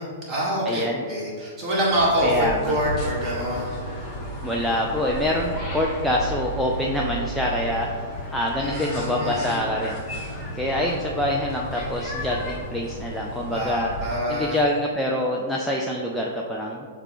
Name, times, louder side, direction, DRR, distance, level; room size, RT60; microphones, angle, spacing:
voice 1, 0.0-3.8 8.6-9.6 13.5-14.6, equal, 20° right, -6 dB, 1.4 m, -26 dB
voice 2, 0.7-1.0 2.2-2.7 4.4-7.9 8.3-10.0 10.5-13.9 14.3-16.9, left 1 dB, ahead, -3 dB, 0.3 m, -25 dB
sound 1, 1.9-14.1, equal, 20° left, 1.2 m, -33 dB
6.6 x 2.3 x 3.0 m, 2.1 s
figure-of-eight pair, 105°, 0 cm